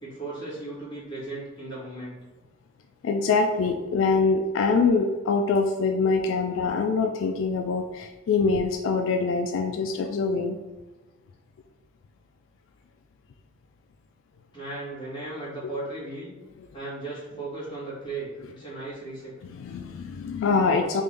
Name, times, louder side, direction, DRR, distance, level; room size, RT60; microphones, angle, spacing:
voice 1, 0.0-2.1 6.5-6.8 14.5-16.3 16.7-19.3, right 2 dB, 25° left, -8 dB, 1.4 m, -36 dB
voice 2, 3.0-10.6 19.4-21.0, left 4 dB, 75° left, 4 dB, 0.3 m, -24 dB
3.4 x 2.5 x 3.3 m, 1.2 s
head